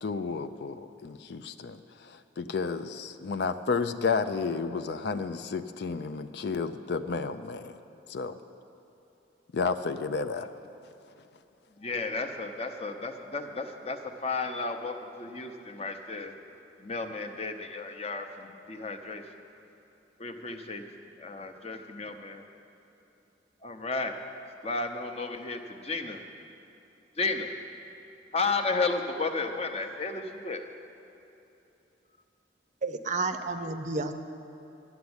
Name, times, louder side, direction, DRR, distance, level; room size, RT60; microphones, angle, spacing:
voice 1, 0.0-7.8 8.1-8.4 9.5-10.5, left 4 dB, 60° left, 9 dB, 0.4 m, -32 dB
voice 2, 11.8-16.3 16.8-19.2 20.2-20.8 21.2-22.4 23.6-24.1 24.6-26.2 27.2-27.5 28.3-30.6, left 3 dB, 35° left, 6 dB, 0.8 m, -33 dB
voice 3, 32.8-34.1, right 3 dB, 40° right, 9 dB, 0.6 m, -31 dB
12.0 x 7.1 x 9.6 m, 2.9 s
head